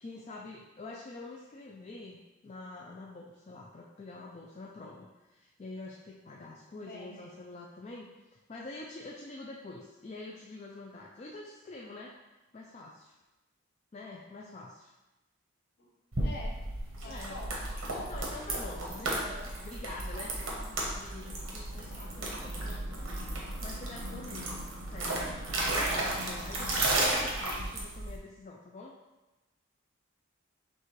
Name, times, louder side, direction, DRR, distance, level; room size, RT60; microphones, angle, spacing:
voice 1, 0.0-12.1 12.5-13.1 13.9-14.9 17.0-17.4 18.1-23.1 23.6-24.5 24.9-25.3 26.1-29.0, left 2 dB, 30° left, -2 dB, 0.3 m, -46 dB
voice 2, 6.8-7.2 15.8-15.9 16.2-16.5 17.0-18.1 19.3-19.5, left 2 dB, 50° left, -3 dB, 0.9 m, -45 dB
sound 1, 16.1-28.2, right 2 dB, 85° right, 1.0 m, -34 dB
7.0 x 2.5 x 3.1 m, 1.0 s
head